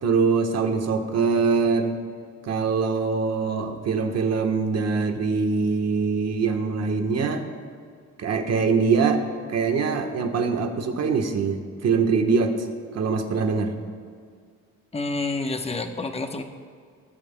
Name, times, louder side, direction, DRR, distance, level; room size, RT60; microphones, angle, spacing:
voice 1, 0.0-2.0 2.4-7.4 8.2-9.2 9.5-12.7 12.9-13.7, right 5 dB, 55° right, 5 dB, 1.2 m, -23 dB
voice 2, 14.9-16.4, left 3 dB, 20° left, 6 dB, 0.9 m, -28 dB
18.0 x 8.5 x 2.2 m, 2.1 s
cardioid pair, 90°, 30 cm